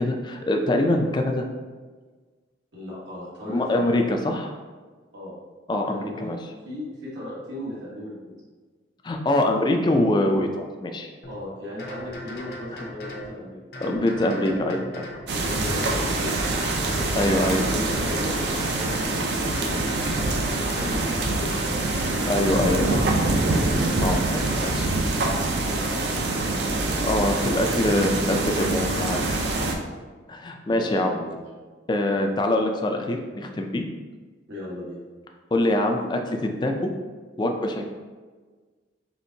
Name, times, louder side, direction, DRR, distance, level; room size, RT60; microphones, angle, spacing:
voice 1, 0.0-1.4 3.5-4.5 5.7-6.4 9.0-11.1 13.8-15.1 17.2-17.8 22.3-22.9 24.0-24.9 27.0-29.5 30.3-31.1 31.9-33.8 35.5-36.9 37.4-37.8, left 1 dB, 25° left, 4 dB, 0.3 m, -24 dB
voice 2, 2.7-4.0 5.1-5.4 5.8-6.3 6.6-8.2 11.3-13.6 15.3-17.1 17.5-21.7 22.1-23.4 25.6-26.3 28.0-28.3 30.3-30.4 30.7-31.3 34.5-35.0, left 1 dB, 75° right, -7 dB, 1.2 m, -36 dB
sound 1, 11.2-11.4 11.8-13.3 13.7-15.2 15.7-17.2 17.6-19.1 19.5-21.0 21.5-23.0 23.4-24.9, left 1 dB, 55° left, 0.6 m, -37 dB
sound 2, 15.3-29.7, right 2 dB, 60° right, 0.5 m, -25 dB
4.3 x 3.5 x 2.7 m, 1.4 s
head